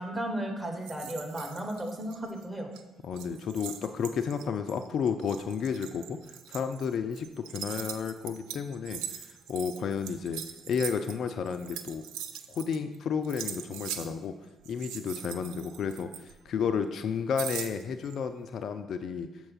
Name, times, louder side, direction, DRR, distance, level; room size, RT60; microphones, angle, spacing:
voice 1, 0.0-2.7, right 1 dB, 20° right, 1 dB, 1.5 m, -34 dB
sound 1, 0.8-2.4 2.7-2.8 3.1-13.0 13.2-14.1 14.6-16.6 17.4-18.2, right 9 dB, 65° right, 0.4 m, -41 dB
voice 2, 3.0-12.0 12.5-14.4 14.7-19.3, left 6 dB, 55° left, 9 dB, 0.3 m, -32 dB
6.5 x 4.5 x 5.5 m, 1.0 s
figure-of-eight pair, 45°, 0 cm